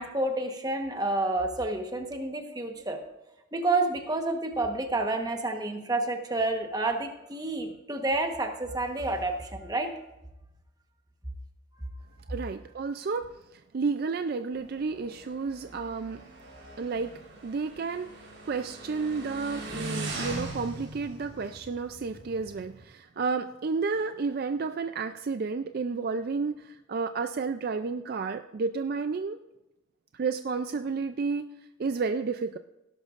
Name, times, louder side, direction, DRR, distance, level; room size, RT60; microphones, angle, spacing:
voice 1, 0.0-3.0 3.5-9.9, right 2 dB, 20° right, 4 dB, 1.2 m, -29 dB
voice 2, 12.3-13.3 13.5-16.2 16.8-17.1 17.4-29.4 30.1-31.5 31.8-32.6, right 4 dB, 50° right, 9 dB, 0.4 m, -31 dB
Motorcycle, 14.5-22.8, right 2 dB, 85° right, 4.2 m, -41 dB
17.5 x 11.5 x 2.5 m, 0.95 s
head